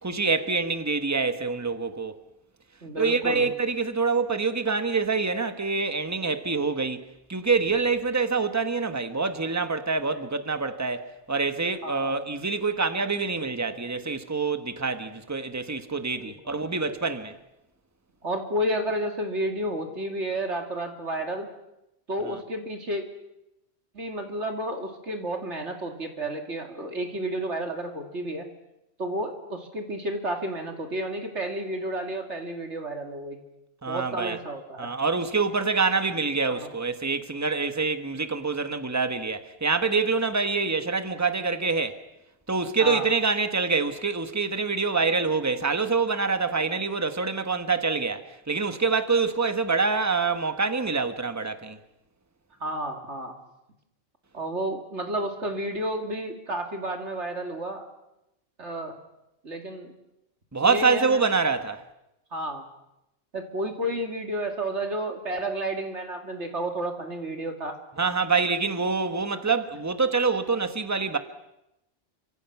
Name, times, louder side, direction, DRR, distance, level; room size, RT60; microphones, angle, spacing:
voice 1, 0.0-2.2 3.0-7.0 7.3-17.3 33.8-34.4 34.8-42.0 42.5-51.8 60.5-61.8 68.0-71.2, right 4 dB, 15° right, 1.3 m, -26 dB
voice 2, 2.8-3.5 11.8-12.2 16.2-16.5 18.2-21.5 22.1-23.0 23.9-28.5 29.0-33.4 33.9-34.9 36.5-36.7 42.8-43.1 52.6-53.3 54.3-57.8 58.6-58.9 59.4-59.9 60.6-61.2 62.3-62.7 63.3-67.8, right 1 dB, 70° right, 2.7 m, -31 dB
29.5 x 26.0 x 6.0 m
omnidirectional pair, 1.2 m